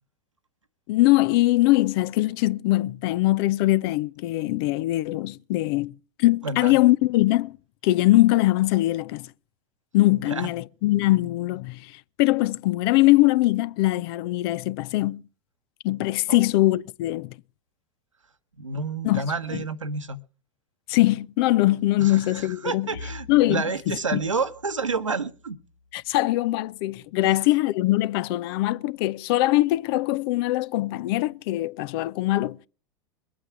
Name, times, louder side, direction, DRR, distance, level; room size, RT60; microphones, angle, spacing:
voice 1, 0.9-5.9 6.2-7.6 7.8-9.3 9.9-15.2 15.8-17.3 19.0-19.2 19.5-19.6 20.9-22.9 23.3-24.2 25.9-32.6, left 17 dB, 50° left, 0.7 m, -22 dB
voice 2, 6.4-6.7 10.3-10.5 16.3-16.5 18.6-20.2 22.0-25.6 27.2-27.4, right 4 dB, 90° right, 1.2 m, -29 dB
Bowed string instrument, 22.9-27.5, left 3 dB, 90° left, 1.2 m, -47 dB
22.0 x 8.8 x 5.9 m
figure-of-eight pair, 90°, 16 cm